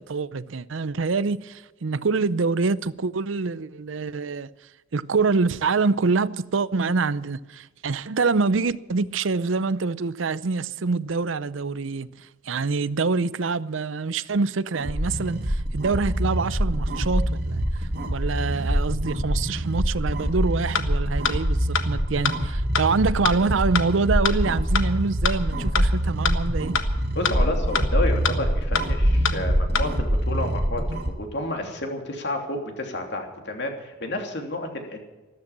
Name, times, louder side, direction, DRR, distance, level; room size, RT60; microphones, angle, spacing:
voice 1, 0.0-4.5 4.9-12.1 12.5-17.6 18.1-26.8, right 4 dB, 85° right, 0.6 m, -25 dB
sound 1, 14.7-31.1, equal, 55° right, 2.2 m, -25 dB
sound 2, 20.7-20.8 21.2-21.3 21.7-21.8 22.2-22.3 22.7-22.8 23.2-23.3 23.7-23.8 24.2-24.3 24.7-24.8 25.2-25.3 25.7-25.8 26.2-26.3 26.7-26.8 27.2-27.3 27.7-27.8 28.2-28.3 28.7-28.8 29.2-29.3 29.7-29.8, left 6 dB, 85° left, 1.5 m, -23 dB
voice 2, 27.1-35.0, left 1 dB, 60° left, 3.0 m, -30 dB
14.0 x 13.5 x 7.3 m
head